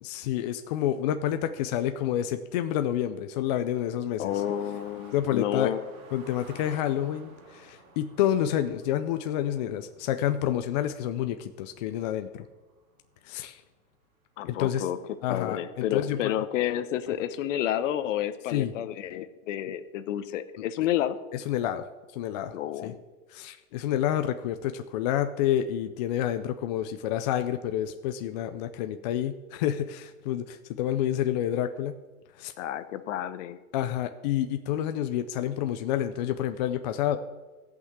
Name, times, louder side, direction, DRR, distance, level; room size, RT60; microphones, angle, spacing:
voice 1, 0.0-4.3 5.1-5.7 6.1-12.5 13.2-13.6 14.5-14.9 15.2-16.3 18.5-18.7 21.3-21.9 22.1-22.6 22.8-22.9 23.3-32.0 32.3-32.5 33.7-37.2, left 11 dB, 35° left, 8 dB, 0.4 m, -29 dB
voice 2, 4.2-5.8 14.4-15.0 15.3-21.2 22.5-23.0 32.6-33.6, left 11 dB, 60° left, 12 dB, 1.0 m, -30 dB
sound 1, 4.3-13.4 13.8-13.9 14.3-16.1, right 4 dB, 85° right, 2.3 m, -53 dB
13.5 x 5.9 x 8.0 m, 1.2 s
supercardioid pair, 155°, 42 cm